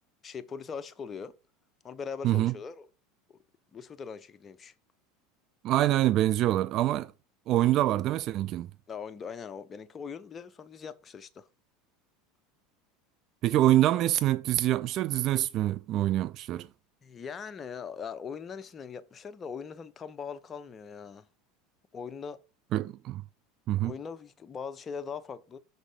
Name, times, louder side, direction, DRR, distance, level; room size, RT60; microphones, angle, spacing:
voice 1, 0.2-1.3 1.8-2.9 3.3-3.4 3.7-4.7 8.9-11.5 17.0-21.3 21.9-22.4 23.8-25.6, left 6 dB, 30° left, 0.7 m, -40 dB
voice 2, 5.6-7.1 7.5-8.7 13.4-16.7 22.7-23.2 23.7-23.9, right 14 dB, 50° right, 0.4 m, -25 dB
6.3 x 4.0 x 4.9 m
hypercardioid pair, 85°, 0 cm